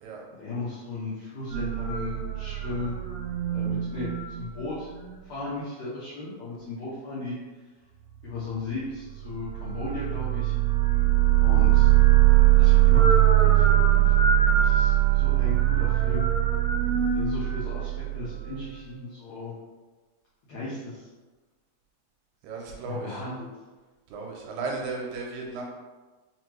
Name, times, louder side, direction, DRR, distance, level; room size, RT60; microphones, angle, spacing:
voice 1, 0.3-3.0 3.5-4.9 5.3-7.3 8.2-10.5 11.4-11.9 12.5-16.3 17.1-19.5 20.5-21.1 22.8-23.5, left 3 dB, 85° left, -9 dB, 1.6 m, -36 dB
sound 1, 1.5-5.1 9.3-18.6, right 13 dB, 60° right, 2.2 m, -21 dB
voice 2, 22.4-23.2 24.1-25.6, right 3 dB, 80° right, -1 dB, 2.3 m, -35 dB
5.5 x 2.2 x 3.0 m, 1.3 s
omnidirectional pair, 4.2 m